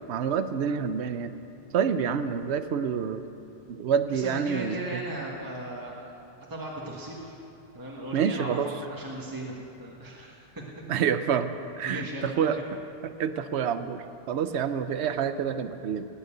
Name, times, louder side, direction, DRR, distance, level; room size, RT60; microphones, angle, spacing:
voice 1, 0.1-1.3 1.7-3.2 3.7-4.8 8.1-8.7 10.9-11.5 11.8-12.1 12.4-12.6 13.2-16.1, right 7 dB, 80° right, 10 dB, 1.0 m, -27 dB
voice 2, 4.1-6.1 6.5-7.4 7.7-9.5 9.8-10.7 11.8-12.5 14.5-14.8, right 1 dB, 20° right, -3 dB, 1.5 m, -37 dB
18.0 x 6.7 x 9.0 m, 2.7 s
omnidirectional pair, 1.1 m